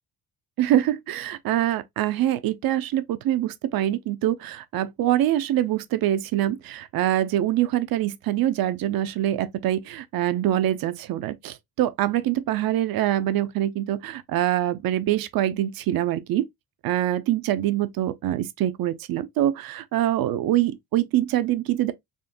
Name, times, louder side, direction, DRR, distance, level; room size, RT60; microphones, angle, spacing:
voice 1, 0.6-16.5 16.8-21.9, right 13 dB, 65° right, 0.5 m, -24 dB
3.6 x 2.2 x 2.5 m
cardioid pair, 140°, 38 cm